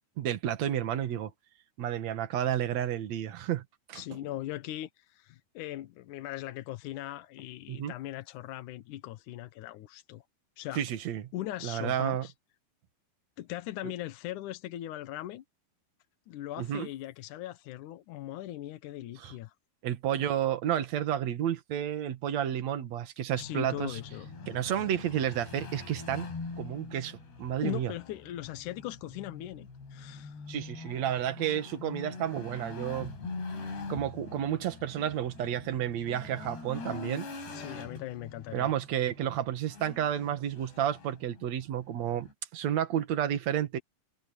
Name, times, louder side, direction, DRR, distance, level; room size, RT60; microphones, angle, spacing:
voice 1, 0.2-1.3 1.8-4.0 7.7-7.9 10.8-11.2 11.6-12.3 16.6-16.9 19.2-19.3 19.8-24.0 24.5-26.3 26.6-27.9 30.5-33.1 33.9-37.3 38.5-42.3 42.5-43.8, right 10 dB, 55° right, 2.3 m, -31 dB
voice 2, 3.9-10.2 10.6-10.8 11.3-12.3 13.4-15.4 16.3-19.5 23.4-24.3 27.6-30.4 37.5-38.7, left 14 dB, 70° left, 2.0 m, -39 dB
sound 1, 23.4-42.3, left 3 dB, 90° left, 8.4 m, -44 dB
omnidirectional pair, 4.7 m